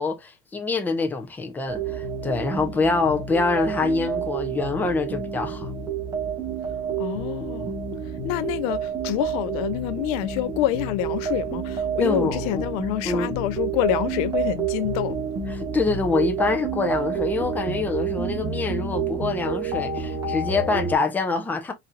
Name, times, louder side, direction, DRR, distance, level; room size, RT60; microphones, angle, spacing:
voice 1, 0.0-5.7 7.6-7.7 12.0-12.7 13.1-13.3 15.5-21.7, left 4 dB, 10° left, 0.6 m, -25 dB
sound 1, 1.7-20.9, right 6 dB, 20° right, 1.4 m, -29 dB
voice 2, 7.0-7.7 8.2-15.2, left 14 dB, 70° left, 0.5 m, -27 dB
4.1 x 4.0 x 2.4 m
cardioid pair, 170°, 19 cm